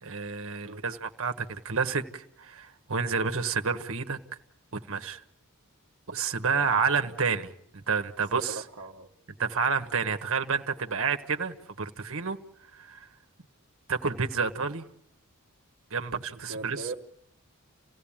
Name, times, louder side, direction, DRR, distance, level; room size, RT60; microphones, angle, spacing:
voice 1, 0.0-4.2 4.7-5.2 6.1-8.6 9.4-12.4 12.7-13.1 13.9-14.8 15.9-16.9, right 5 dB, 65° right, 1.4 m, -29 dB
voice 2, 8.8-9.1 16.5-16.9, right 3 dB, 85° right, 1.1 m, -39 dB
28.5 x 16.5 x 8.8 m
head